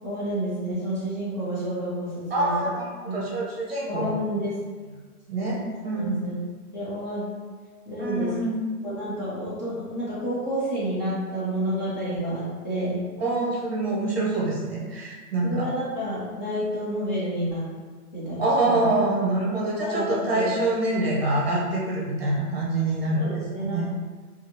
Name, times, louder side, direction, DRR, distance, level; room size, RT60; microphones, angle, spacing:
voice 1, 0.0-2.7 3.0-3.2 3.9-4.6 5.4-5.5 5.9-6.4 6.7-7.2 7.8-8.3 8.8-13.0 15.4-17.6 18.1-18.9 19.8-20.5 23.2-23.9, right 1 dB, 30° left, -10 dB, 1.0 m, -29 dB
voice 2, 2.3-4.1 5.3-5.6 5.8-6.1 8.0-8.5 13.2-15.7 18.4-23.9, right 2 dB, 40° right, -5 dB, 0.8 m, -25 dB
3.0 x 2.4 x 2.8 m, 1.4 s
hypercardioid pair, 180°, 45 cm